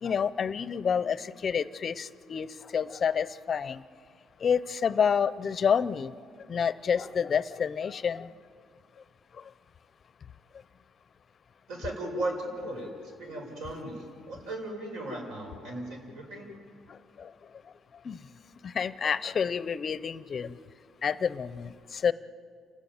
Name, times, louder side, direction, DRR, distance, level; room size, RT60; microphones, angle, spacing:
voice 1, 0.0-2.5 2.7-3.8 4.4-6.1 6.5-8.3 17.2-17.3 18.0-18.2 18.6-20.5 21.0-22.1, left 7 dB, 35° left, 16 dB, 0.5 m, -28 dB
voice 2, 11.7-16.5, right 1 dB, 85° right, 1 dB, 5.9 m, -36 dB
29.5 x 13.5 x 9.3 m, 2.2 s
cardioid pair, 145°, 0 cm